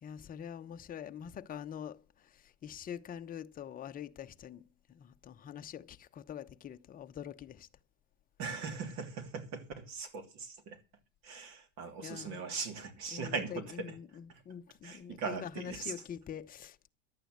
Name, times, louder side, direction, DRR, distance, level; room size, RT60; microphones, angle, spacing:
voice 1, 0.0-7.7 12.0-12.6 13.1-16.9, left 9 dB, 25° left, 0.9 m, -45 dB
voice 2, 8.4-10.8 11.2-13.9 14.8-15.9, right 5 dB, 50° right, 2.9 m, -40 dB
11.5 x 9.0 x 7.8 m
hypercardioid pair, 115°, 36 cm